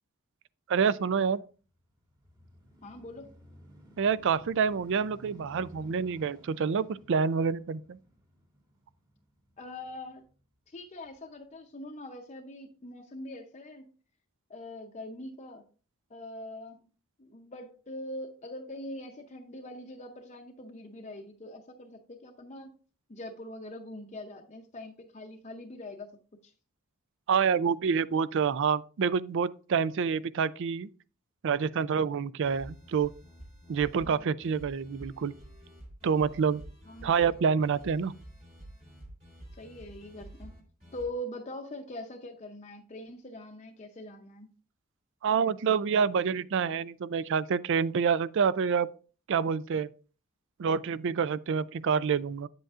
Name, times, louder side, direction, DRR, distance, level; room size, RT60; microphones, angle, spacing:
voice 1, 0.7-1.4 4.0-8.0 27.3-30.9 31.4-33.1 33.7-35.3 36.0-36.6 37.0-38.1 45.2-48.9 49.3-49.9 50.6-52.5, right 6 dB, 60° right, 0.4 m, -27 dB
sound 1, 1.6-10.4 11.1-11.2, equal, 20° right, 1.6 m, -56 dB
voice 2, 2.8-3.3 9.6-10.2 10.7-13.9 14.5-15.6 16.1-16.9 17.2-22.7 23.1-26.1 26.4-26.5 33.9-34.3 36.8-37.1 39.5-40.5 40.9-44.5, left 1 dB, 35° left, 0.6 m, -43 dB
sound 2, 32.4-41.1, right 1 dB, 40° right, 2.6 m, -49 dB
8.7 x 7.9 x 2.4 m
head